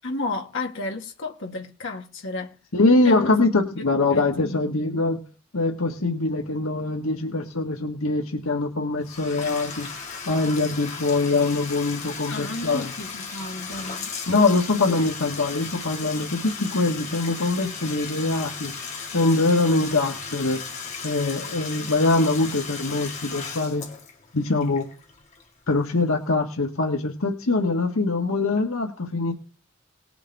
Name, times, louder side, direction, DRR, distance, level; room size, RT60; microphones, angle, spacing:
voice 1, 0.0-2.5 3.0-3.4 4.1-4.8 12.3-14.1, left 2 dB, 65° left, 2.1 m, -32 dB
voice 2, 2.7-5.2 5.5-9.9 10.2-12.9 14.3-18.7 19.1-20.6 21.0-23.9 24.3-24.9 25.7-29.3, left 3 dB, 85° left, 1.6 m, -23 dB
Bathtub (filling or washing), 9.0-25.7, left 5 dB, 35° left, 2.4 m, -36 dB
20.0 x 6.9 x 3.5 m
head